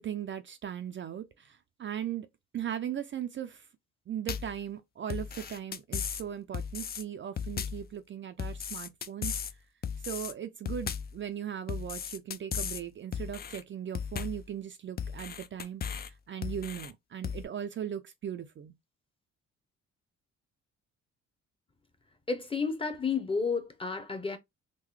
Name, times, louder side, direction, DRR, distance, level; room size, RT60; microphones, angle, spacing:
voice 1, 0.0-2.3 2.5-3.7 4.1-9.4 10.0-18.7, right 9 dB, 40° right, 0.4 m, -38 dB
sound 1, 4.3-4.6 5.1-6.2 6.5-7.0 7.4-7.9 8.4-9.5 9.8-10.3 10.7-11.2 11.7-12.8 13.1-13.6 14.0-14.5 15.0-16.1 16.4-16.9 17.2-17.4, left 7 dB, 35° left, 0.4 m, -36 dB
voice 2, 22.3-24.4, left 5 dB, 20° left, 0.8 m, -31 dB
3.8 x 2.1 x 3.1 m
cardioid pair, 90°, 30 cm